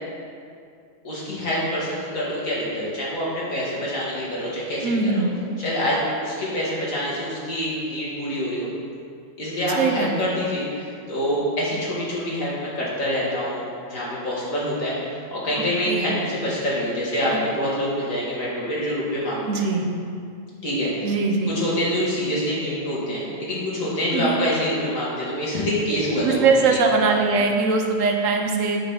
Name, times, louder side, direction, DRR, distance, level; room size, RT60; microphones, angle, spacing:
voice 1, 1.0-5.3 5.6-8.7 9.4-19.6 20.6-20.9 21.5-26.8, equal, 80° left, -7 dB, 2.3 m, -26 dB
voice 2, 4.8-5.3 9.8-10.1 15.8-16.0 19.5-19.8 21.0-21.5 24.1-24.4 26.2-28.8, right 4 dB, 75° right, 3 dB, 1.2 m, -21 dB
8.5 x 4.1 x 5.5 m, 2.3 s
omnidirectional pair, 1.4 m